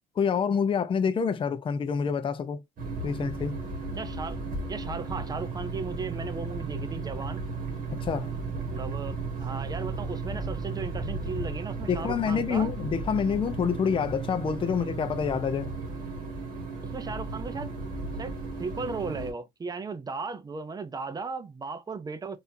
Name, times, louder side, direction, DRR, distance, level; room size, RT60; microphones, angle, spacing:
voice 1, 0.2-2.6 3.0-3.6 8.0-8.3 11.9-15.7, left 6 dB, 30° left, 0.5 m, -27 dB
sound 1, 2.8-19.3, right 3 dB, 55° right, 1.7 m, -35 dB
voice 2, 3.9-4.4 4.7-7.5 8.5-12.7 16.9-17.7 18.2-18.3 18.6-22.4, right 4 dB, 25° right, 0.6 m, -36 dB
4.1 x 2.6 x 2.6 m
cardioid pair, 110°, 17 cm